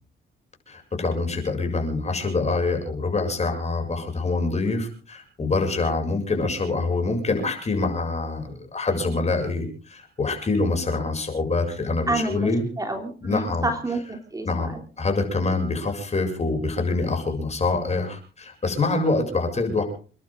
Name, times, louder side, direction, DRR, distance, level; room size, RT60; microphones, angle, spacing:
voice 1, 0.7-12.7 13.2-13.7 14.4-19.8, left 3 dB, 35° left, 4 dB, 7.4 m, -25 dB
voice 2, 12.1-12.5 12.8-14.5 14.7-14.8, right 2 dB, 15° right, 4 dB, 3.2 m, -28 dB
29.5 x 11.5 x 3.9 m, 0.39 s
cardioid pair, 90°, 20 cm